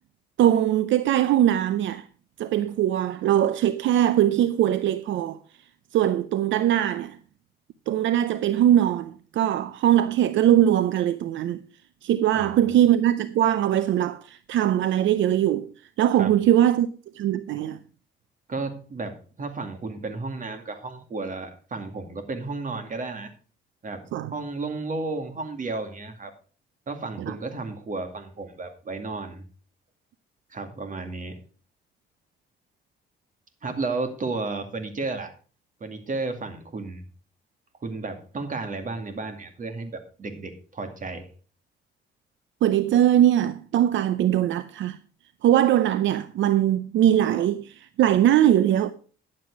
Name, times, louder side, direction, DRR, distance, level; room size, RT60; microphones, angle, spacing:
voice 1, 0.4-2.0 2.4-5.4 5.9-7.2 7.9-11.6 12.0-15.7 16.0-17.8 24.1-24.3 27.3-27.4 42.6-45.0 45.4-48.9, right 11 dB, 70° right, 0.6 m, -21 dB
voice 2, 12.3-12.6 16.2-16.3 18.5-23.3 23.8-26.3 26.9-29.4 30.5-31.4 33.6-35.3 35.8-37.0 37.8-41.3, right 3 dB, 40° right, 2.3 m, -33 dB
11.0 x 7.6 x 4.8 m
cardioid pair, 90°, 20 cm